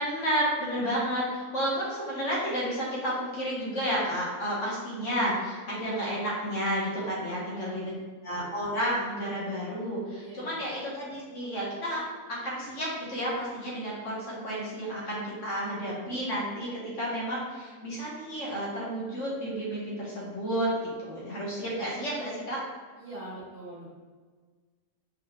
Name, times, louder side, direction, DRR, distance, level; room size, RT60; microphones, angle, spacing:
voice 1, 0.0-7.9 8.2-12.0 12.3-22.6, equal, 55° left, -5 dB, 1.2 m, -31 dB
voice 2, 7.2-7.9 10.2-10.6 23.0-23.8, right 1 dB, 45° right, -6 dB, 1.3 m, -43 dB
4.7 x 2.9 x 2.9 m, 1.5 s
omnidirectional pair, 1.6 m